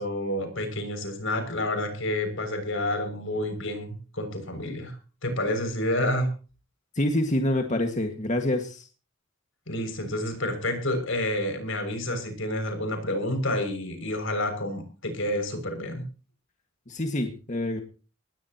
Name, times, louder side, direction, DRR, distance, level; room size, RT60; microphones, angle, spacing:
voice 1, 0.0-4.9 5.2-6.3 9.7-16.0, left 1 dB, 70° left, 7 dB, 6.5 m, -29 dB
voice 2, 7.0-8.9 16.9-17.8, left 1 dB, 35° left, 4 dB, 1.8 m, -26 dB
20.0 x 17.0 x 3.0 m, 0.36 s
head